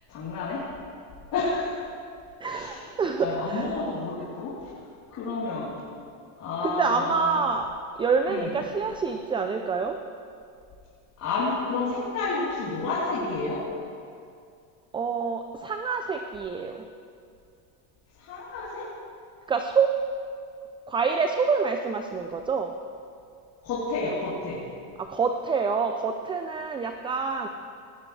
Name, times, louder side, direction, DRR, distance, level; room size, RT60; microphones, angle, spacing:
voice 1, 0.1-0.6 1.3-1.7 2.5-2.9 3.2-4.7 5.1-5.7 6.4-7.4 8.3-8.5 11.2-13.6 18.2-18.8 23.6-24.6, left 3 dB, 50° left, -10 dB, 3.6 m, -30 dB
voice 2, 2.4-3.8 6.6-7.7 8.0-10.0 14.9-16.8 19.5-19.9 20.9-22.7 25.1-27.5, right 5 dB, 15° right, 5 dB, 0.4 m, -27 dB
19.0 x 14.0 x 3.3 m, 2.3 s
supercardioid pair, 130°, 42 cm